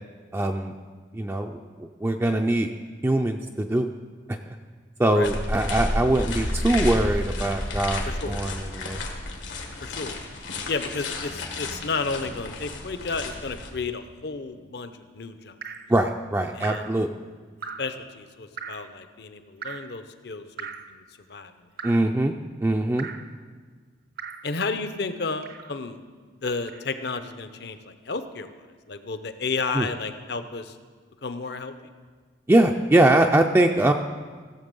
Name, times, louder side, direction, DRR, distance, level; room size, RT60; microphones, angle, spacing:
voice 1, 0.3-0.7 1.1-2.7 3.0-3.9 4.3-4.6 5.0-9.0 15.9-17.1 21.8-23.1 29.7-29.9 32.5-33.9, right 1 dB, 15° right, 3 dB, 0.4 m, -22 dB
sound 1, 5.2-13.7, left 1 dB, 90° left, 1.8 m, -31 dB
voice 2, 8.1-8.4 9.8-10.2 10.7-15.5 16.5-16.9 17.8-21.0 21.3-21.5 24.4-26.0 26.4-28.5 28.9-30.8 31.2-31.7, left 4 dB, 60° left, 10 dB, 0.7 m, -32 dB
Drip, 15.6-15.9 16.6-17.0 17.6-18.0 18.6-18.9 19.6-20.0 20.6-20.9 21.8-22.1 23.0-23.3 24.2-24.5 25.4-25.8 26.7-26.9, right 6 dB, 55° right, 0.6 m, -38 dB
16.0 x 7.3 x 5.3 m, 1.5 s
head